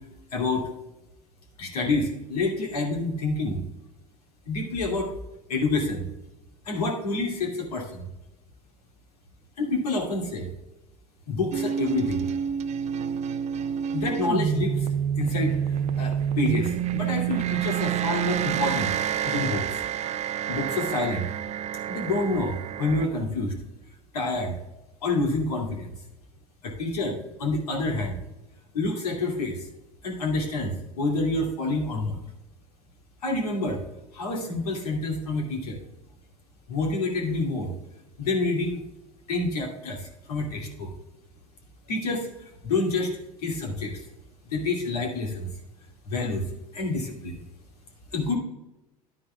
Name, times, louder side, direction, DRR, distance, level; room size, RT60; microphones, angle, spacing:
voice 1, 0.3-0.7 1.6-3.6 4.5-5.1 5.5-6.1 6.7-8.0 9.6-10.5 11.3-12.2 13.9-14.9 15.2-15.6 16.0-18.9 19.2-19.6 20.5-21.3 21.9-23.5 24.1-24.5 25.0-25.9 26.6-28.1 28.7-29.6 30.0-32.2 33.2-33.8 34.1-35.8 36.7-37.7 38.2-38.8 39.3-40.9 41.9-42.3 42.6-43.1 43.4-44.0 44.5-45.5 46.1-46.5 46.7-47.4 48.1-48.4, left 2 dB, 80° left, 1 dB, 2.4 m, -27 dB
sound 1, 11.5-23.1, right 9 dB, 35° right, 0.5 m, -28 dB
11.0 x 10.0 x 2.3 m, 0.98 s
hypercardioid pair, 80°, 19 cm